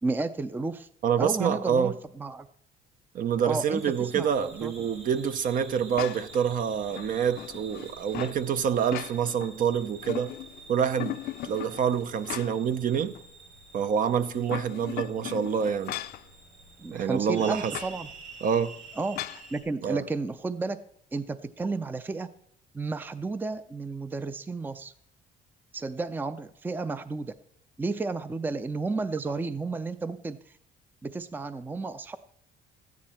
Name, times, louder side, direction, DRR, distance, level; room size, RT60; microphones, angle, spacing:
voice 1, 0.0-0.9 1.2-2.5 3.4-4.9 16.8-18.1 19.0-20.8 21.1-22.3 22.7-24.9 25.7-27.3 27.8-30.6 31.0-32.2, right 3 dB, 10° right, 0.5 m, -32 dB
voice 2, 1.0-1.9 3.1-10.3 10.7-13.1 13.7-16.0 16.9-17.7 18.4-18.7 19.8-20.0, right 7 dB, 55° right, 0.7 m, -27 dB
sound 1, 3.7-19.6, right 3 dB, 85° right, 4.5 m, -49 dB
sound 2, 6.0-6.4 6.9-8.4 8.8-9.5 9.8-10.6 11.0-12.8 13.1-13.2 14.3-16.2 17.7-18.0 19.2-19.5, left 14 dB, 65° left, 0.5 m, -38 dB
13.5 x 9.5 x 4.3 m
cardioid pair, 110°, 17 cm